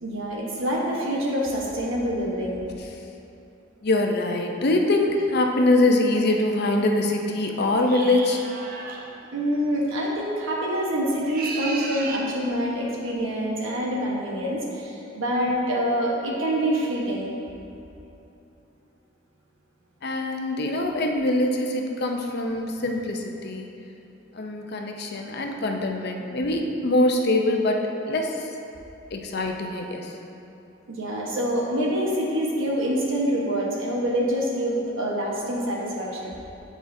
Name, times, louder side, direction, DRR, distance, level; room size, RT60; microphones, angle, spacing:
voice 1, 0.0-2.7 9.3-17.3 30.9-36.4, equal, 85° right, -3 dB, 1.2 m, -26 dB
voice 2, 3.8-8.4 20.0-23.7 24.3-28.5 29.1-30.1, left 2 dB, 55° left, 2 dB, 0.6 m, -23 dB
sound 1, 7.8-9.1 11.1-12.3, right 3 dB, 50° right, 0.6 m, -34 dB
9.0 x 5.0 x 2.7 m, 2.8 s
head